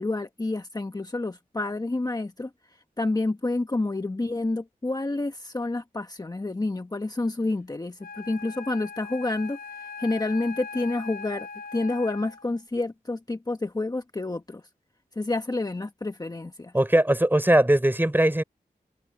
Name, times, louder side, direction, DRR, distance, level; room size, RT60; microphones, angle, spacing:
voice 1, 0.0-14.7 15.1-16.7, left 2 dB, 25° left, 1.2 m, -29 dB
Wind instrument woodwind instrument, 8.0-12.6, left 5 dB, 85° left, 4.1 m, -40 dB
voice 2, 16.7-18.4, right 1 dB, 15° right, 3.7 m, -20 dB
wide cardioid pair, 90°, 15 cm